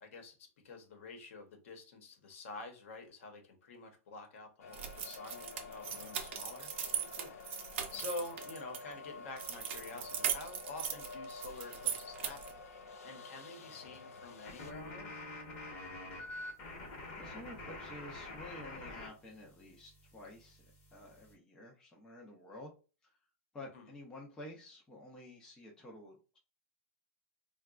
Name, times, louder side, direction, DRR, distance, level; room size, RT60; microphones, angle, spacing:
voice 1, 0.0-0.3 0.6-12.5 13.0-15.2 23.7-23.9, left 2 dB, 60° left, 1.0 m, -48 dB
sound 1, 4.6-14.7, left 4 dB, 75° left, 0.5 m, -50 dB
sound 2, 4.7-8.8 9.4-12.6, right 8 dB, 55° right, 0.6 m, -39 dB
sound 3, 14.4-19.1 19.4-21.3, left 2 dB, 30° left, 1.0 m, -47 dB
voice 2, 17.2-20.6 20.9-22.7 23.0-23.1 23.5-26.4, left 1 dB, 10° left, 0.5 m, -51 dB
3.9 x 2.2 x 2.3 m
supercardioid pair, 165°, 8 cm